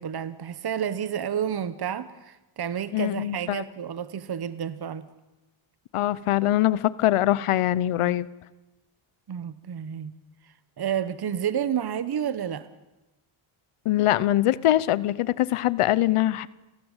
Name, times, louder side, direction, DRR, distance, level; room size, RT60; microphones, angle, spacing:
voice 1, 0.0-5.1 9.3-10.1 10.4-12.7, right 9 dB, 50° right, 14 dB, 1.2 m, -30 dB
voice 2, 2.9-3.6 5.9-8.3 13.8-16.5, left 14 dB, 90° left, 19 dB, 1.0 m, -23 dB
29.5 x 19.5 x 9.0 m, 1.0 s
cardioid pair, 95°, 50 cm